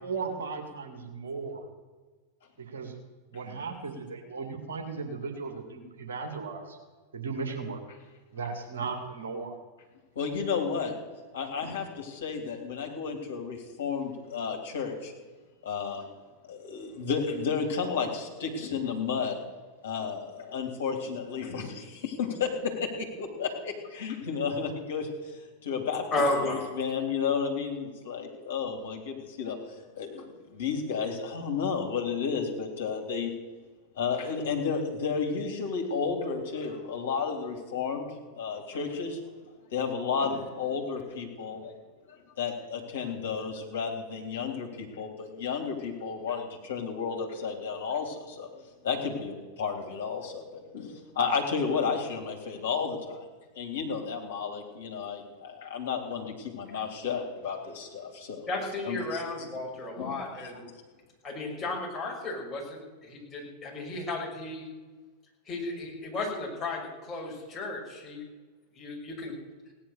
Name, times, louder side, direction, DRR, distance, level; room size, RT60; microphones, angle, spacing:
voice 1, 0.0-1.6 2.6-2.9 3.3-6.8 7.1-7.8 8.3-9.6, right 4 dB, 65° right, 4 dB, 2.3 m, -36 dB
voice 2, 10.1-10.9 11.3-15.1 15.6-16.0 16.4-19.4 19.8-26.0 26.4-33.3 34.0-38.1 38.3-39.2 39.7-41.7 42.1-53.3 53.5-58.5 58.8-59.2 60.0-60.2 60.5-60.6, left 5 dB, 60° left, 3 dB, 3.2 m, -32 dB
voice 3, 26.1-26.7 58.5-60.6 61.2-64.6 65.5-68.2 68.7-69.3, left 2 dB, 20° left, -3 dB, 6.3 m, -33 dB
17.5 x 10.5 x 6.7 m, 1.3 s
figure-of-eight pair, 90°, 0 cm